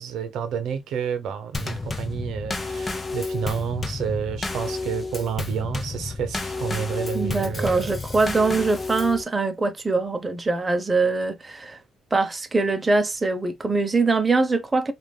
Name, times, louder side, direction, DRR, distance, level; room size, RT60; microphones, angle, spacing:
voice 1, 0.0-7.9, right 7 dB, 80° right, 0.8 m, -30 dB
Drum kit / Snare drum / Bass drum, 1.5-9.2, left 3 dB, 25° left, 0.7 m, -31 dB
voice 2, 7.1-11.8 12.1-14.9, right 3 dB, 25° right, 0.7 m, -23 dB
4.9 x 2.5 x 2.2 m
cardioid pair, 90°, 0 cm